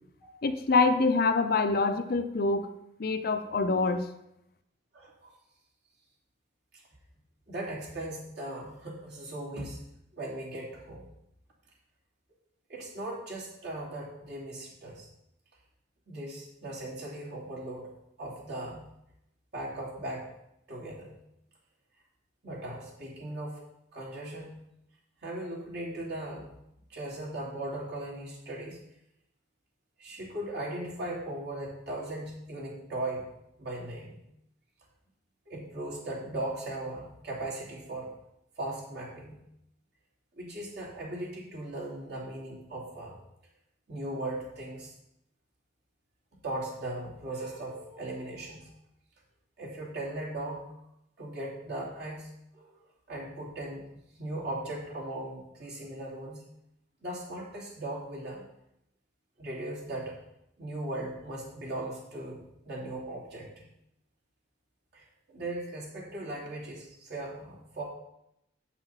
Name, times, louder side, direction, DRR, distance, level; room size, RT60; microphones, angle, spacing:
voice 1, 0.4-2.7 3.0-4.1, left 3 dB, 50° left, 8 dB, 0.6 m, -25 dB
voice 2, 4.9-5.3 7.5-9.8 10.1-11.1 12.7-15.1 16.1-17.9 18.2-18.8 19.5-20.3 20.7-21.1 22.4-23.6 23.9-24.6 25.2-26.5 26.9-28.8 30.0-33.3 33.6-34.2 35.5-38.1 38.6-39.4 40.4-43.2 43.9-44.9 46.4-48.7 49.6-50.7 51.2-52.7 53.1-56.5 57.0-58.5 59.4-60.2 60.6-63.7 64.9-67.8, right 1 dB, 55° right, -4 dB, 2.9 m, -38 dB
8.1 x 5.9 x 5.6 m, 0.82 s
head